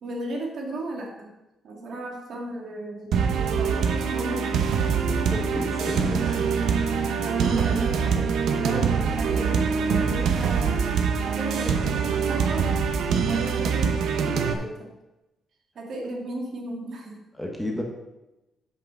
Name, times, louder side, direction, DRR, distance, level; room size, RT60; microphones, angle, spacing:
voice 1, 0.0-1.3 1.6-5.0 7.2-10.8 11.3-11.8 12.0-12.9 13.2-14.9 15.8-17.2, right 1 dB, 50° right, 0 dB, 2.1 m, -35 dB
sound 1, 3.1-14.5, right 6 dB, 75° right, 0.9 m, -24 dB
voice 2, 5.1-6.8 17.3-17.8, left 1 dB, 5° left, 0 dB, 1.2 m, -32 dB
8.4 x 5.8 x 6.2 m, 0.98 s
cardioid pair, 160°, 0 cm